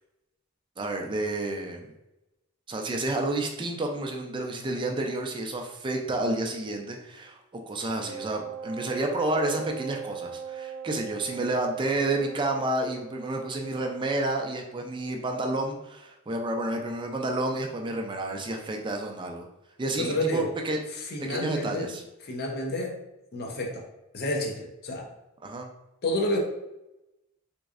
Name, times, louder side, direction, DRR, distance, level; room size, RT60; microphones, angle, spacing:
voice 1, 0.8-1.9 2.7-19.5 19.8-20.8 21.3-22.0 25.4-25.7, right 2 dB, 20° right, 2 dB, 0.4 m, -30 dB
Wind instrument woodwind instrument, 8.0-14.7, right 7 dB, 85° right, 0.6 m, -40 dB
voice 2, 20.0-20.5 21.1-21.9 22.2-23.0 23.3-23.8 24.1-25.1 26.0-26.4, left 1 dB, 50° left, 0 dB, 0.7 m, -29 dB
3.6 x 3.1 x 2.4 m, 0.93 s
head